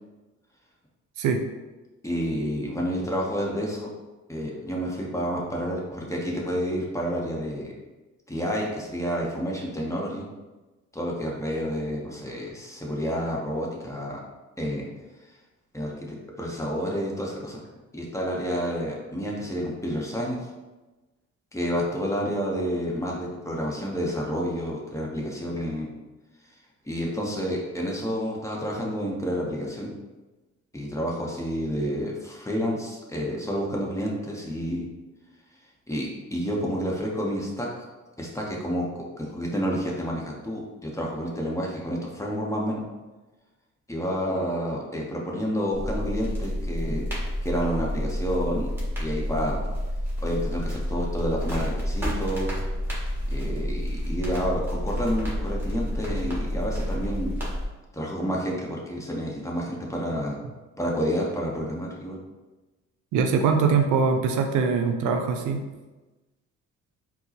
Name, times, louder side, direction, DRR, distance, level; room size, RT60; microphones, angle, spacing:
voice 1, 2.0-3.9 4.3-7.7 8.3-10.3 10.9-14.2 14.6-14.9 15.7-17.6 17.9-20.4 21.5-25.9 26.8-29.9 30.7-34.9 35.9-37.9 38.2-38.9 39.2-42.8 43.9-47.0 47.4-48.7 49.0-49.6 50.2-52.6 53.3-57.3 57.9-60.4 60.8-62.2, equal, 10° left, -3 dB, 0.7 m, -29 dB
sound 1, 45.7-57.7, equal, 5° right, 1.3 m, -29 dB
voice 2, 63.1-65.6, right 5 dB, 80° right, 4 dB, 0.5 m, -22 dB
4.4 x 2.0 x 2.8 m, 1.1 s
cardioid pair, 90°, 30 cm